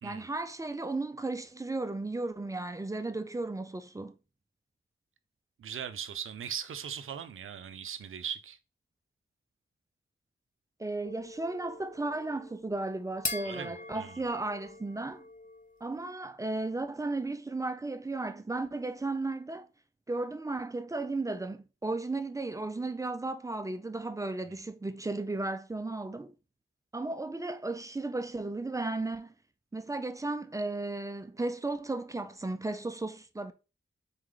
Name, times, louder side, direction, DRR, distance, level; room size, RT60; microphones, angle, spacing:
voice 1, 0.0-4.1 10.8-15.2 15.8-19.7 20.1-26.3 26.9-29.3 29.7-33.5, right 2 dB, 15° right, 0.3 m, -35 dB
voice 2, 5.6-8.6 13.4-14.2, right 8 dB, 75° right, 0.5 m, -39 dB
sound 1, 11.0-15.9, left 3 dB, 40° left, 0.6 m, -42 dB
4.0 x 3.3 x 3.7 m
wide cardioid pair, 165°, 21 cm